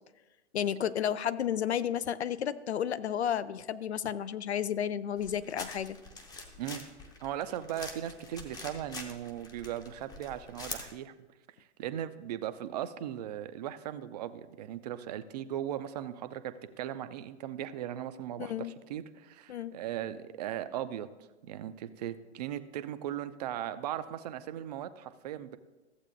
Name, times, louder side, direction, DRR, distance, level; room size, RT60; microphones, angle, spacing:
voice 1, 0.5-6.0 18.4-18.7 19.5-19.7, left 9 dB, 75° left, 16 dB, 0.5 m, -32 dB
sound 1, 5.2-11.0, left 3 dB, 10° left, 0.7 m, -45 dB
voice 2, 7.2-11.1 11.8-21.1 21.4-25.6, right 11 dB, 40° right, 11 dB, 0.5 m, -38 dB
14.0 x 7.9 x 2.6 m, 1.2 s
figure-of-eight pair, 110°, 34 cm